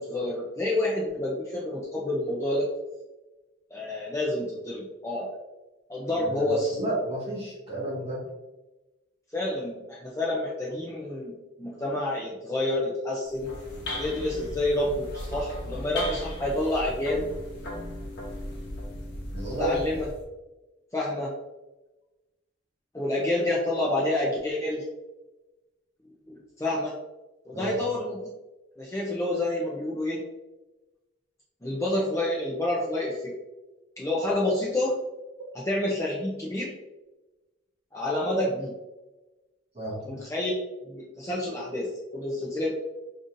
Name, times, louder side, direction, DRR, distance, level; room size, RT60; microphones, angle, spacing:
voice 1, 0.0-2.7 3.7-5.4 5.9-6.8 9.3-13.5 14.0-17.3 19.5-20.1 20.9-21.3 22.9-24.8 26.3-26.9 27.5-28.2 28.8-30.2 31.6-33.4 34.0-35.0 35.5-36.7 37.9-38.8 40.0-40.5 40.8-42.7, left 1 dB, 15° left, -4 dB, 0.5 m, -28 dB
voice 2, 6.2-8.2 19.3-19.7 27.5-27.8 39.7-40.1, right 1 dB, 30° right, -5 dB, 1.5 m, -32 dB
sound 1, 13.2-20.2, left 1 dB, 55° left, 0.9 m, -36 dB
5.2 x 2.6 x 2.5 m, 1.1 s
head